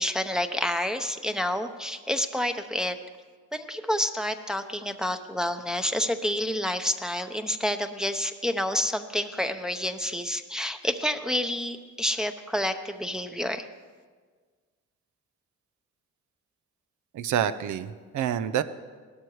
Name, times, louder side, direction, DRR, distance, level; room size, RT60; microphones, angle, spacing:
voice 1, 0.0-3.0 3.5-13.7, left 1 dB, ahead, 6 dB, 0.8 m, -29 dB
voice 2, 17.1-18.6, right 9 dB, 75° right, 12 dB, 0.8 m, -27 dB
18.0 x 12.5 x 4.8 m, 1.5 s
cardioid pair, 90°, 30 cm